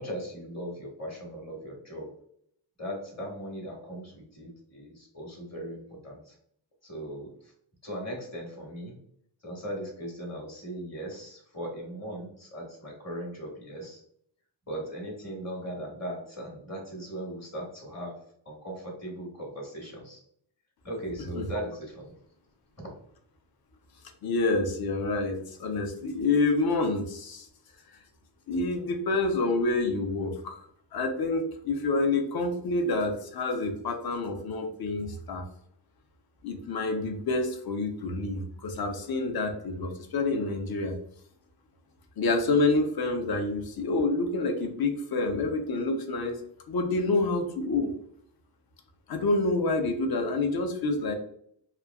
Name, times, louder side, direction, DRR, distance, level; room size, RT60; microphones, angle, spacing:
voice 1, 0.0-2.1 2.8-6.4 6.8-7.5 7.8-9.0 9.4-14.0 14.7-18.2 18.4-20.2 20.8-22.1, equal, 35° left, -2 dB, 1.2 m, -38 dB
voice 2, 24.2-27.5 27.9-28.0 28.5-30.6 30.9-35.5 36.4-40.9 42.2-46.4 46.7-47.9 49.1-51.1, left 3 dB, 50° left, 5 dB, 0.6 m, -28 dB
3.1 x 2.3 x 2.2 m, 0.66 s
wide cardioid pair, 115°, 47 cm